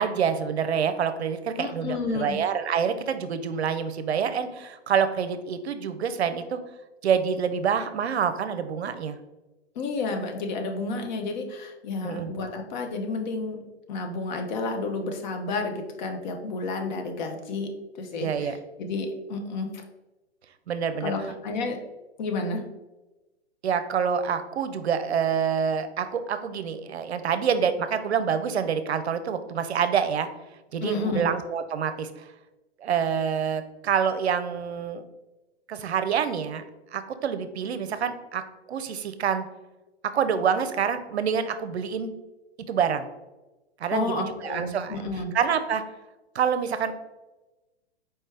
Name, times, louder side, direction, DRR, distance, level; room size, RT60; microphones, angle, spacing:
voice 1, 0.0-6.6 7.0-9.2 12.0-12.3 18.2-18.6 20.7-21.1 23.6-30.3 30.7-32.1 32.8-35.0 35.7-36.6 36.9-39.5 40.0-42.2 42.7-43.1 43.8-45.0 45.3-45.8 46.3-46.9, right 7 dB, 70° right, 10 dB, 0.5 m, -27 dB
voice 2, 1.6-2.4 9.7-19.7 21.0-21.8 22.2-22.7 30.8-31.3 43.9-45.3, left 3 dB, 40° left, 4 dB, 0.7 m, -31 dB
4.5 x 3.1 x 3.3 m, 1.1 s
figure-of-eight pair, 110°, 33 cm